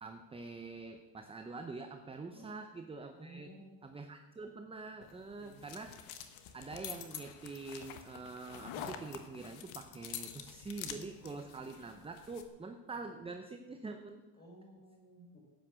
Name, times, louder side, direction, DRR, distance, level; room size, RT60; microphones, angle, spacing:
voice 1, 0.0-3.5 3.8-6.0 6.5-14.2, right 3 dB, 10° right, 6 dB, 0.7 m, -45 dB
voice 2, 3.1-3.8 5.4-5.6 14.4-15.4, right 1 dB, 20° left, 0 dB, 4.7 m, -55 dB
sound 1, 5.0-12.5, left 9 dB, 80° left, 1.4 m, -47 dB
11.5 x 8.8 x 6.3 m, 1.2 s
cardioid pair, 115°, 47 cm